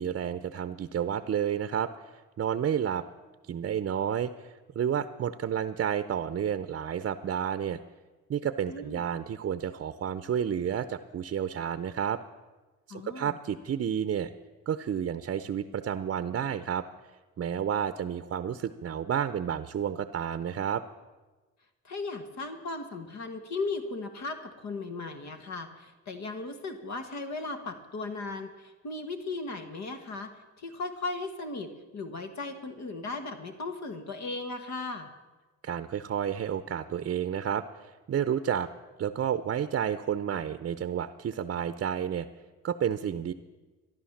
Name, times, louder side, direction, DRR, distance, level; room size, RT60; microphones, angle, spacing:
voice 1, 0.0-3.0 3.5-7.8 8.3-12.2 12.9-14.3 14.7-16.8 17.4-20.8 35.6-38.7 39.0-42.3 42.6-43.3, right 9 dB, 45° right, 11 dB, 0.7 m, -31 dB
voice 2, 8.7-9.0 12.9-13.4 21.8-30.3 30.6-35.1, left 3 dB, 65° left, 7 dB, 1.6 m, -37 dB
14.0 x 11.0 x 7.3 m, 1.2 s
cardioid pair, 90°, 30 cm